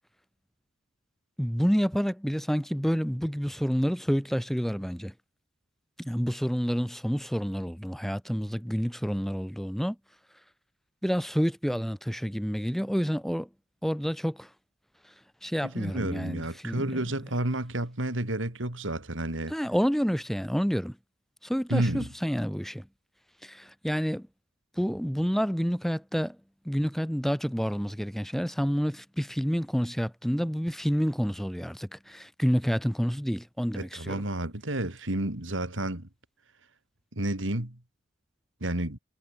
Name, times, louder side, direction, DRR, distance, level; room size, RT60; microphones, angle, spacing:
voice 1, 1.4-5.1 6.0-10.0 11.0-13.5 13.8-14.5 15.4-16.9 19.5-20.9 21.4-22.8 23.4-24.3 24.8-26.4 26.6-34.2, equal, ahead, 6.7 m, -29 dB
voice 2, 15.6-19.5 21.7-22.1 33.7-36.1 37.1-37.8 38.6-39.0, right 1 dB, 75° right, 3.2 m, -31 dB
head